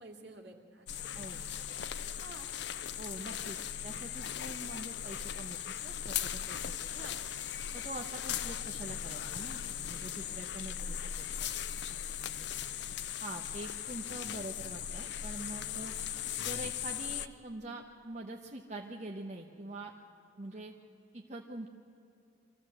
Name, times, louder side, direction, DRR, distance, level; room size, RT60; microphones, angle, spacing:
voice 1, 0.0-2.5 6.9-7.2 7.7-7.9 10.1-10.4 10.6-10.9 11.9-12.6 20.5-20.6, right 2 dB, 65° right, 2 dB, 2.5 m, -54 dB
sound 1, 0.9-17.3, left 9 dB, 65° left, 0.6 m, -38 dB
voice 2, 3.0-3.6 3.8-6.8 7.7-11.5 11.9-12.5 13.2-15.9 16.4-19.9 20.4-20.7 21.1-21.7, right 1 dB, 40° right, 0 dB, 1.0 m, -45 dB
24.0 x 15.0 x 7.7 m, 2.7 s
head